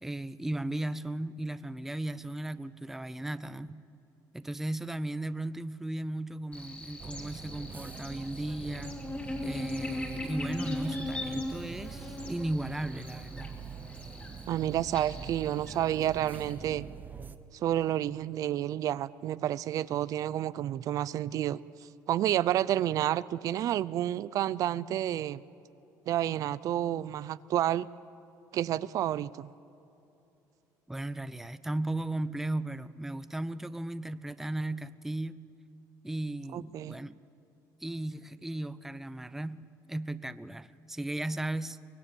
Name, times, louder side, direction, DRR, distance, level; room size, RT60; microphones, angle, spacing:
voice 1, 0.0-3.8 4.3-9.0 9.4-13.6 30.9-35.4 36.0-37.2 37.8-41.8, right 1 dB, 5° right, 14 dB, 0.5 m, -36 dB
Buzz, 6.5-16.5, left 2 dB, 20° left, 3.1 m, -40 dB
sound 1, 7.0-17.4, right 5 dB, 25° right, 0.9 m, -44 dB
voice 2, 14.5-16.9 17.5-21.6 22.1-25.4 26.1-27.9 28.5-29.5 36.5-37.0, right 12 dB, 55° right, 18 dB, 0.5 m, -30 dB
24.0 x 19.5 x 8.5 m, 2.9 s
cardioid pair, 140°, 7 cm